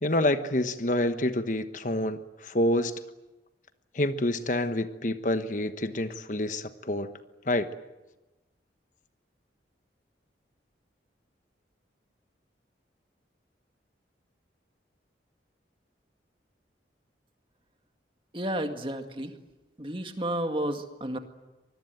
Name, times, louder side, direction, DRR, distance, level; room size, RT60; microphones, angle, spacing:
voice 1, 0.0-3.0 3.9-7.1 7.5-7.7, left 1 dB, 45° left, 9 dB, 1.2 m, -27 dB
voice 2, 18.3-19.3 19.8-21.2, right 1 dB, 30° right, 6 dB, 2.0 m, -31 dB
25.5 x 21.0 x 9.2 m, 1.1 s
head